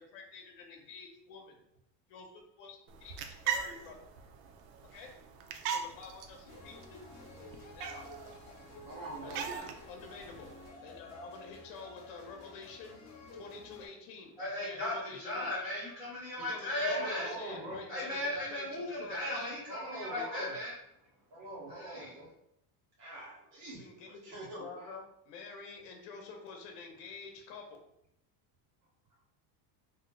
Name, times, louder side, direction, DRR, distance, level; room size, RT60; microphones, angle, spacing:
voice 1, 0.0-1.6 2.1-4.0 4.9-5.1 5.7-7.0 7.7-8.1 9.2-10.5 10.8-13.0 13.3-14.3 14.6-15.5 16.5-18.2 18.5-19.5 20.1-20.3 23.8-24.2 24.6-27.7, left 4 dB, 80° left, 2 dB, 0.7 m, -48 dB
sound 1, 2.9-10.7, right 7 dB, 80° right, 0.6 m, -41 dB
sound 2, 6.5-13.9, left 2 dB, 35° left, 0.5 m, -51 dB
voice 2, 8.8-9.7 16.8-17.8 19.7-20.5 21.3-22.3 23.0-25.0, right 2 dB, 60° right, -4 dB, 1.4 m, -44 dB
voice 3, 14.4-17.5 17.9-20.7 21.7-22.2, left 1 dB, 5° right, -12 dB, 0.9 m, -36 dB
2.7 x 2.0 x 3.6 m, 0.78 s
cardioid pair, 165°, 47 cm